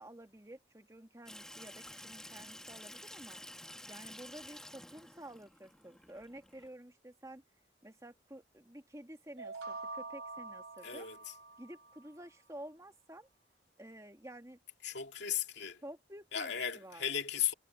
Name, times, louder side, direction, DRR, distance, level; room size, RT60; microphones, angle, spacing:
voice 1, 0.0-3.4 3.9-7.4 7.8-11.1 11.6-13.3 13.8-14.6 15.8-17.1, right 1 dB, 15° right, 1.9 m, -51 dB
Water tap faucet / Sink (filling or washing), 1.3-6.7, left 1 dB, 5° left, 1.1 m, -51 dB
sound 1, 9.4-12.1, right 3 dB, 70° right, 3.3 m, -46 dB
voice 2, 10.8-11.3 14.8-15.8 16.3-17.5, left 9 dB, 65° left, 2.6 m, -36 dB
head